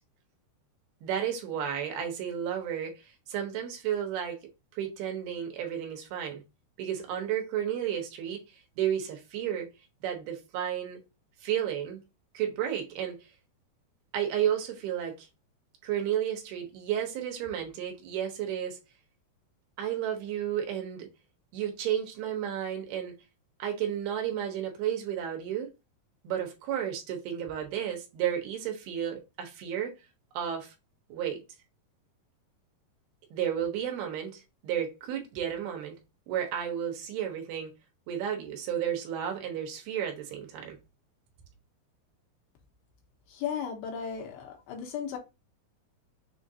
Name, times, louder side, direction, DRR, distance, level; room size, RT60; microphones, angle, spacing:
voice 1, 1.0-4.4 4.8-6.4 6.8-9.7 10.0-11.0 11.4-12.0 12.3-13.3 14.1-15.3 15.8-18.8 19.8-21.1 21.5-23.2 23.6-25.7 26.2-30.0 30.3-30.7 31.1-31.4 33.3-36.0 36.3-37.7 38.1-40.8, right 9 dB, 80° right, 2.8 m, -32 dB
voice 2, 43.3-45.2, left 7 dB, 80° left, 3.0 m, -35 dB
6.7 x 2.5 x 2.6 m
omnidirectional pair, 4.5 m